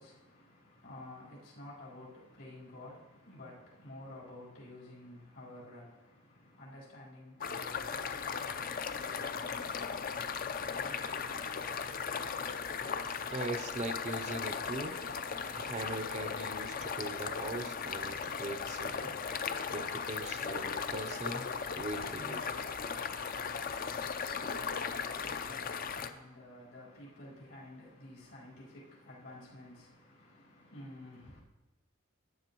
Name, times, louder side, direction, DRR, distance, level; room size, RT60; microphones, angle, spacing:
voice 1, 0.0-12.0 24.4-31.4, left 1 dB, 75° left, 4.0 m, -52 dB
sound 1, 7.4-26.1, left 6 dB, 45° left, 0.5 m, -37 dB
voice 2, 13.3-15.0 15.6-19.4 19.7-21.5 21.7-22.6, right 2 dB, 35° right, 0.6 m, -40 dB
13.0 x 9.4 x 3.0 m
head